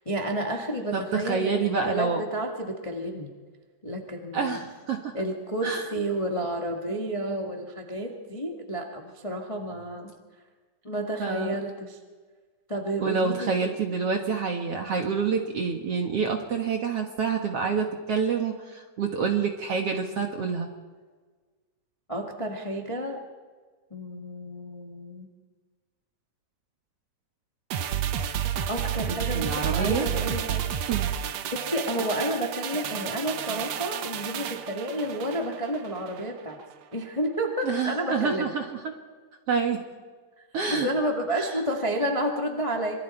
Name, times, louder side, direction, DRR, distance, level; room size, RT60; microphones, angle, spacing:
voice 1, 0.0-3.3 3.8-4.6 5.1-10.1 10.8-12.0 12.7-13.5 22.1-23.2 23.9-25.3 28.7-30.7 31.5-36.6 36.9-38.5 40.7-43.0, right 1 dB, 20° left, 1 dB, 0.8 m, -30 dB
voice 2, 0.9-2.2 4.3-5.1 5.6-5.9 11.2-11.6 13.0-20.7 29.1-30.1 30.9-31.1 37.6-38.8 39.5-39.8 40.5-40.9 41.4-41.6, right 5 dB, 55° right, 3 dB, 1.8 m, -27 dB
sound 1, 27.7-36.3 36.6-36.7, right 9 dB, 80° right, 1.5 m, -31 dB
26.0 x 23.5 x 4.5 m, 1.4 s
omnidirectional pair, 4.3 m